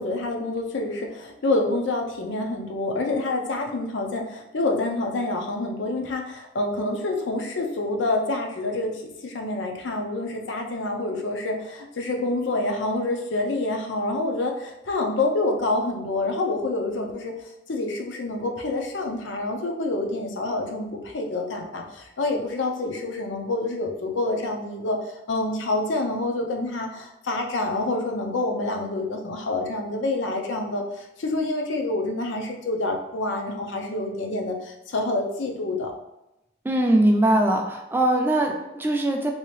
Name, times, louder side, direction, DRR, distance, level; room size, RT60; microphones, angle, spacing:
voice 1, 0.0-25.0 25.3-35.9, left 2 dB, 90° left, 2 dB, 0.5 m, -27 dB
voice 2, 36.6-39.3, right 1 dB, 10° right, 2 dB, 0.3 m, -21 dB
3.2 x 2.7 x 3.1 m, 0.90 s
head